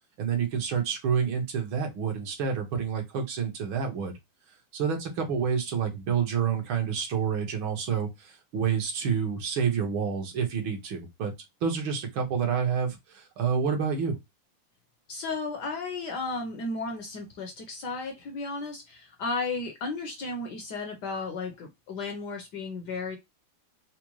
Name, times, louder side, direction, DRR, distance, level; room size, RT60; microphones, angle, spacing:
voice 1, 0.2-4.1 4.7-11.3 11.6-14.2, right 6 dB, 70° right, 1.8 m, -28 dB
voice 2, 15.1-23.2, left 3 dB, 65° left, 1.1 m, -34 dB
5.0 x 2.1 x 3.0 m
omnidirectional pair, 2.4 m